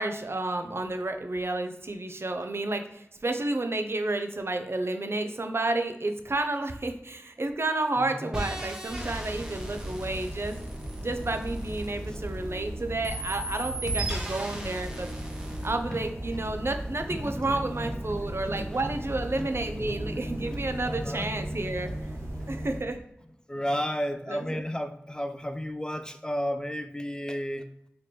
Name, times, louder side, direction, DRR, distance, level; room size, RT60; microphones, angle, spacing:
voice 1, 0.0-10.6 11.0-15.1 15.6-21.9 22.5-23.0 23.7-23.8 24.3-24.6, right 2 dB, 60° right, 6 dB, 0.5 m, -31 dB
voice 2, 8.0-8.3 12.1-12.2 15.4-16.0 16.4-16.5 17.1-17.9 18.2-18.8 19.4-19.5 19.8-20.6 20.8-21.3 21.8-21.9 23.5-27.6, equal, 15° left, 8 dB, 0.3 m, -34 dB
sound 1, 8.3-12.6 13.0-15.7, right 1 dB, 15° right, 1.0 m, -37 dB
sound 2, 8.9-22.8, right 1 dB, 75° right, 1.3 m, -37 dB
4.0 x 3.0 x 3.1 m, 0.77 s
wide cardioid pair, 40°, 5 cm